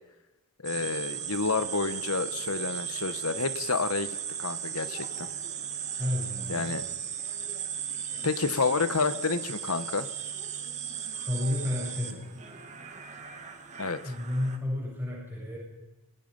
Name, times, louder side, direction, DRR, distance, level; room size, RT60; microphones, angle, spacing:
voice 1, 0.6-5.3 6.5-6.9 8.2-10.1 13.8-14.1, left 4 dB, 80° left, 12 dB, 1.2 m, -29 dB
sound 1, 0.6-14.6, right 8 dB, 30° right, 2.0 m, -36 dB
voice 2, 6.0-6.8 11.3-12.2 14.0-15.6, left 1 dB, 10° right, -5 dB, 7.6 m, -31 dB
26.0 x 18.5 x 5.5 m, 1.1 s
head